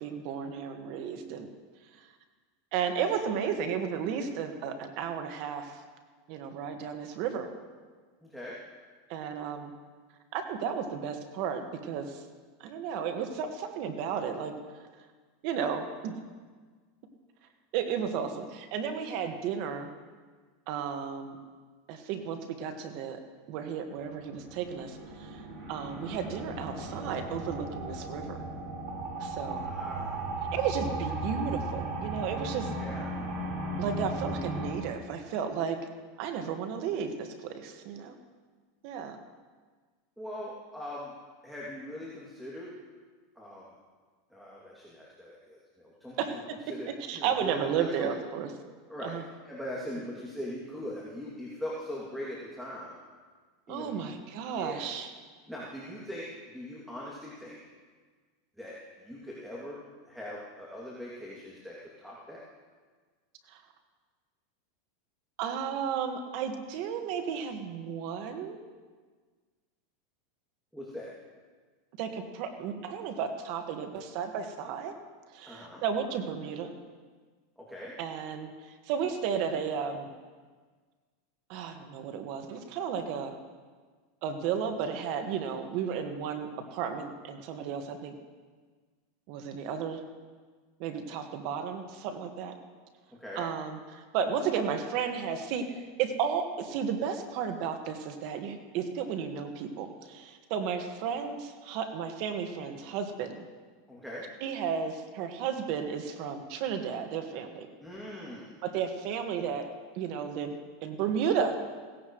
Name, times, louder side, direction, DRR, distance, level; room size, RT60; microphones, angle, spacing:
voice 1, 0.0-1.5 2.7-5.8 6.3-7.5 9.1-9.7 10.3-12.2 12.6-14.5 15.4-16.1 17.7-19.9 20.7-21.4 21.9-23.2 23.5-28.4 29.2-29.7 30.5-32.7 33.8-35.8 36.2-38.2 38.8-39.2 46.2-46.6 46.8-48.5 49.0-49.2 53.7-55.1 63.5-63.6 65.4-68.6 72.0-74.9 75.3-76.7 78.0-80.1 81.5-83.4 84.2-88.1 89.3-90.0 90.8-92.5 93.3-103.4 104.4-107.7 108.6-109.7 109.9-111.6, right 7 dB, 60° right, 6 dB, 1.7 m, -33 dB
sound 1, 24.1-34.7, right 1 dB, 45° right, 4.4 m, -36 dB
voice 2, 29.6-30.3 32.7-33.1 40.2-41.1 41.4-42.7 43.4-43.7 44.3-46.1 46.7-48.1 48.9-49.2 49.5-52.9 53.7-54.2 54.5-54.8 55.5-56.3 56.5-57.6 58.6-58.8 59.0-62.4 70.7-71.1 75.4-75.8 77.6-77.9 93.2-93.4 103.9-104.2 107.8-108.5, left 1 dB, ahead, -6 dB, 2.7 m, -41 dB
17.0 x 16.0 x 3.2 m, 1.5 s
supercardioid pair, 120°, 0 cm